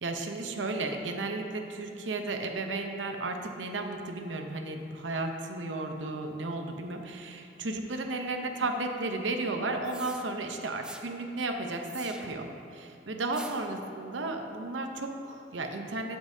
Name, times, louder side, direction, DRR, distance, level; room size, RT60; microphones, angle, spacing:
voice 1, 0.0-16.2, right 2 dB, 90° right, 4 dB, 0.7 m, -34 dB
sound 1, 9.8-10.2 10.8-11.1 11.9-12.5 13.3-13.7, right 2 dB, 5° right, 0.4 m, -45 dB
14.5 x 5.3 x 2.7 m, 2.7 s
head